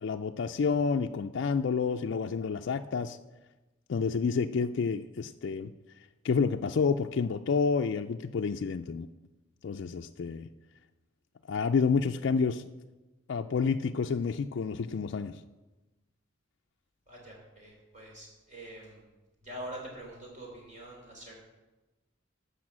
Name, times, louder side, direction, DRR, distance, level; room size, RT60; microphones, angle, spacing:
voice 1, 0.0-3.2 3.9-5.7 6.2-9.1 9.6-10.5 11.5-12.6 13.3-15.4, left 5 dB, 60° left, 5 dB, 0.4 m, -29 dB
voice 2, 17.1-19.0 19.4-21.4, right 1 dB, 40° right, -1 dB, 3.5 m, -45 dB
12.0 x 5.6 x 7.4 m, 1.1 s
head